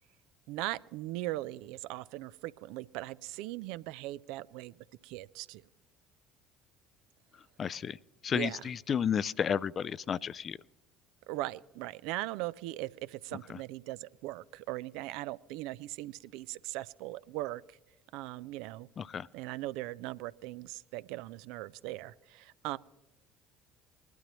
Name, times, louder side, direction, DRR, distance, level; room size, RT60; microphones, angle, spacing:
voice 1, 0.5-4.7 5.0-5.6 8.3-8.7 11.3-17.6 18.1-18.9 19.3-22.8, right 17 dB, 65° right, 17 dB, 0.4 m, -39 dB
voice 2, 7.6-8.0 8.2-10.6 19.0-19.3, left 7 dB, 40° left, 20 dB, 0.4 m, -32 dB
20.5 x 11.5 x 3.0 m, 1.1 s
figure-of-eight pair, 60°, 0 cm